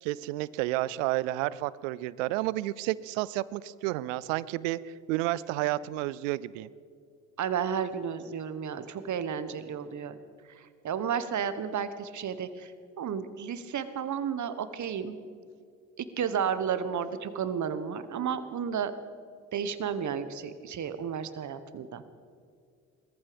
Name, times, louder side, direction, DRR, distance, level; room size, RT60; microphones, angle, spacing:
voice 1, 0.0-4.8 5.1-6.7, right 17 dB, 85° right, 20 dB, 0.6 m, -31 dB
voice 2, 7.4-10.2 10.8-12.7 13.0-15.2 16.0-18.9 19.5-22.0, right 7 dB, 50° right, 12 dB, 1.4 m, -32 dB
19.5 x 14.0 x 5.2 m, 2.3 s
hypercardioid pair, 60°, 38 cm